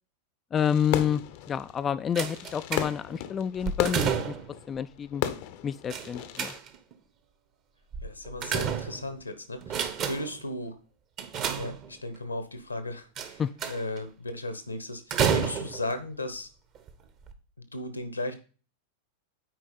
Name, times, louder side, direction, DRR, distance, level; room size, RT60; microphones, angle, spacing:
voice 1, 0.5-4.4 4.7-5.2 5.6-6.5 13.4-13.5, left 8 dB, 25° left, 12 dB, 0.3 m, -29 dB
Fireworks, 0.6-6.6, left 11 dB, 50° left, 0.7 m, -35 dB
sound 1, 2.2-3.2 3.6-4.6 5.9-6.9 7.9-9.2 9.6-10.4 11.2-12.2 13.2-14.0 15.1-15.9 16.8-16.9 17.2-17.3, right 7 dB, 35° right, 1.0 m, -30 dB
voice 2, 8.0-10.8 11.5-16.5 17.6-18.3, left 1 dB, 80° left, 10 dB, 1.1 m, -36 dB
9.1 x 4.6 x 4.2 m, 0.37 s
figure-of-eight pair, 90°, 0 cm